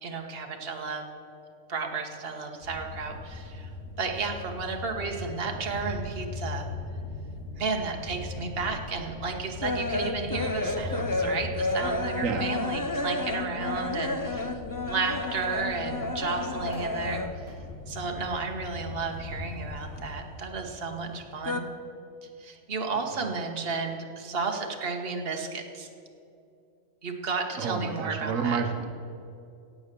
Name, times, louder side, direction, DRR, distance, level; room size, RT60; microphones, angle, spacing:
voice 1, 0.0-1.0 1.7-3.7 4.0-6.7 7.5-14.5 14.8-17.2 17.9-21.6 22.4-25.9 27.0-28.6, right 4 dB, 50° right, 3 dB, 1.5 m, -33 dB
sound 1, 2.6-20.2, left 2 dB, 55° left, 3.8 m, -40 dB
sound 2, 8.9-17.5 17.8-19.0 19.3-20.7 21.0-21.6, left 2 dB, 20° left, 0.6 m, -31 dB
voice 2, 27.6-29.0, right 5 dB, 80° right, 6 dB, 1.4 m, -29 dB
17.0 x 7.6 x 6.8 m, 2.6 s
omnidirectional pair, 1.3 m